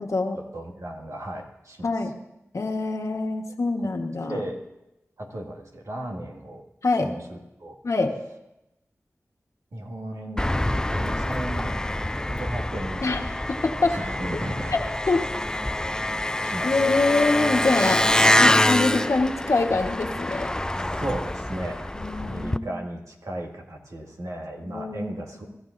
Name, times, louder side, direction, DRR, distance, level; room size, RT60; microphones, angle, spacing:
voice 1, 0.0-0.4 1.8-2.1 2.5-4.4 6.8-7.1 7.8-8.1 13.0-13.2 13.5-14.0 14.7-15.2 16.6-20.5 21.9-22.7 24.6-25.1, left 3 dB, 75° left, 3 dB, 1.3 m, -25 dB
voice 2, 0.5-1.9 4.2-4.6 5.2-6.6 7.0-7.8 9.7-11.8 12.1-13.2 13.9-14.8 16.4-16.8 21.0-25.6, right 1 dB, 80° right, 1 dB, 2.0 m, -35 dB
Engine, 10.4-22.6, left 1 dB, 15° left, 0.4 m, -25 dB
24.0 x 14.0 x 2.6 m, 0.90 s
cardioid pair, 45°, 5 cm